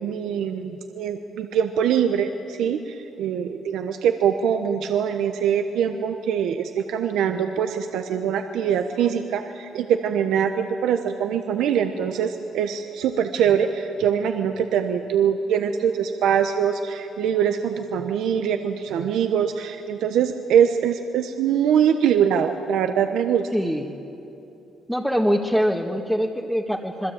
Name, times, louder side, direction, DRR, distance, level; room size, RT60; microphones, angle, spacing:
voice 1, 0.0-23.5, right 8 dB, 85° right, 6 dB, 1.1 m, -23 dB
voice 2, 23.5-23.9 24.9-27.1, equal, ahead, -1 dB, 1.7 m, -23 dB
27.0 x 21.5 x 8.9 m, 2.8 s
cardioid pair, 100°, 0 cm